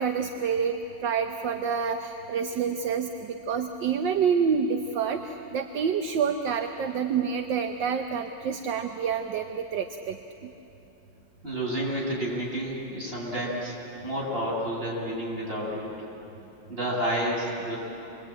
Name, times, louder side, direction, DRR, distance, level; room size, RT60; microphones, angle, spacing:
voice 1, 0.0-10.2 10.4-10.5, right 6 dB, 70° right, 6 dB, 1.6 m, -28 dB
voice 2, 11.4-13.7 14.0-15.9 16.7-17.8, equal, 30° right, -4 dB, 7.4 m, -30 dB
27.5 x 23.0 x 9.0 m, 3.0 s
omnidirectional pair, 2.1 m